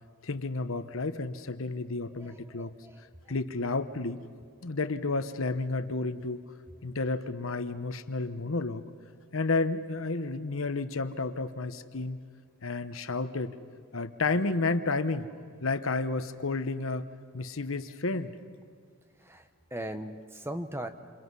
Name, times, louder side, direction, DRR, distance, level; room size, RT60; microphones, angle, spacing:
voice 1, 0.2-2.7 3.3-4.2 4.6-6.4 6.8-8.8 9.3-12.2 12.6-13.6 13.9-15.3 15.6-17.1 17.3-18.3, left 3 dB, 65° left, 11 dB, 1.0 m, -31 dB
voice 2, 2.2-3.0 19.2-20.9, right 1 dB, 10° right, 8 dB, 1.0 m, -39 dB
28.5 x 28.5 x 5.5 m, 2.2 s
head